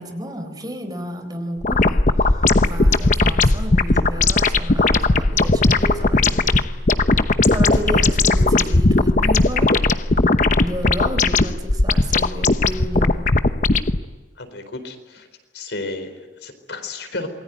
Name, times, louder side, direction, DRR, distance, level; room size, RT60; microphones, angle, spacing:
voice 1, 0.0-6.7 7.5-9.9 10.6-13.3, equal, 20° right, 7 dB, 4.1 m, -32 dB
sound 1, 1.6-14.0, left 2 dB, 45° left, 0.9 m, -18 dB
voice 2, 14.4-15.3 15.5-17.3, left 2 dB, 80° left, 8 dB, 4.5 m, -32 dB
28.0 x 22.5 x 9.4 m, 1.2 s
head